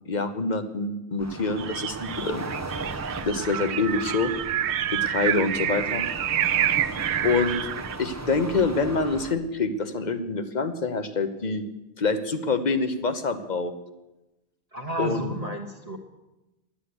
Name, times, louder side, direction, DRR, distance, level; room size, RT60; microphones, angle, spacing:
voice 1, 0.1-2.5 3.3-4.3 4.9-6.0 7.2-7.5 8.0-11.6 12.0-13.7 15.0-15.3, left 4 dB, 45° left, 9 dB, 1.1 m, -26 dB
sound 1, 1.2-9.3, right 2 dB, 15° right, 0.8 m, -37 dB
sound 2, 1.6-8.0, right 11 dB, 90° right, 0.9 m, -28 dB
voice 2, 2.0-2.4 14.7-16.0, right 1 dB, 35° right, 1 dB, 1.3 m, -32 dB
12.0 x 8.8 x 9.7 m, 1.0 s
omnidirectional pair, 1.1 m